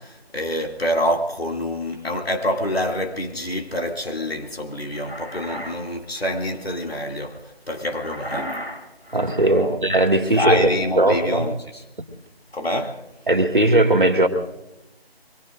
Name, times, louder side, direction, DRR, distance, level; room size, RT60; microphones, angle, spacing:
voice 1, 0.0-8.6 9.4-9.8 10.3-11.8 12.5-13.0, left 1 dB, 70° left, 2.6 m, -26 dB
sound 1, 1.9-2.8 4.6-5.8 6.1-6.4 7.9-9.7, equal, 90° left, 7.6 m, -36 dB
voice 2, 9.1-10.7 11.0-11.5 13.3-14.3, right 1 dB, 50° right, 2.0 m, -18 dB
25.0 x 22.0 x 2.6 m
figure-of-eight pair, 175°, 31 cm